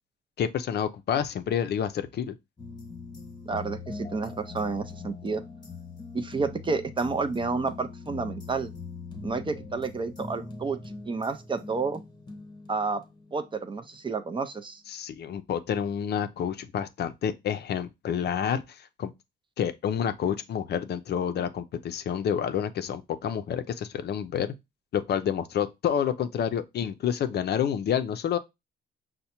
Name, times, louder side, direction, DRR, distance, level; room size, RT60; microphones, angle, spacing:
voice 1, 0.4-2.3 14.9-19.1 19.6-24.5 24.9-28.4, left 8 dB, 55° left, 0.5 m, -29 dB
sound 1, 2.6-13.7 13.9-14.0, left 4 dB, 20° left, 1.0 m, -42 dB
voice 2, 3.5-5.4 6.1-8.7 9.2-10.8 11.1-12.0 12.7-13.0 13.3-14.8, right 4 dB, 25° right, 0.4 m, -30 dB
5.3 x 2.1 x 2.9 m
cardioid pair, 90°, 20 cm